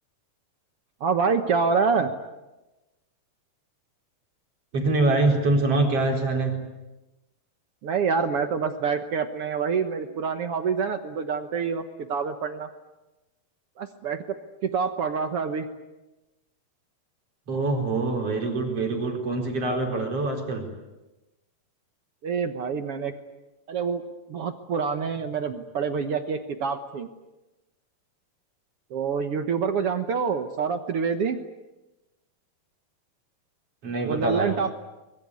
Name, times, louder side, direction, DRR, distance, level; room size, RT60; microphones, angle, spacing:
voice 1, 1.0-2.1 7.8-11.8 12.1-12.7 13.8-14.2 14.6-15.7 22.2-23.1 23.7-24.0 24.3-27.1 28.9-31.4 34.0-34.8, right 5 dB, 70° right, 8 dB, 1.4 m, -26 dB
voice 2, 4.7-6.6 17.5-20.7 33.8-34.6, right 2 dB, 40° right, 2 dB, 5.1 m, -24 dB
24.0 x 22.5 x 9.7 m, 1.0 s
omnidirectional pair, 4.3 m